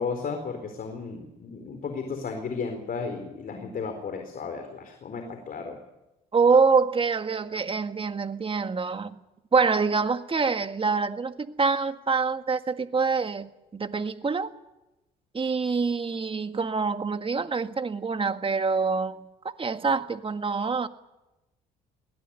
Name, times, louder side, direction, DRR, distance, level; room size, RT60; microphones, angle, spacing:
voice 1, 0.0-5.8, left 5 dB, 50° left, 4.1 m, -34 dB
voice 2, 6.3-9.2 9.5-14.5 15.3-20.9, right 4 dB, 30° right, 1.8 m, -25 dB
21.5 x 17.0 x 10.0 m
supercardioid pair, 65°, 18 cm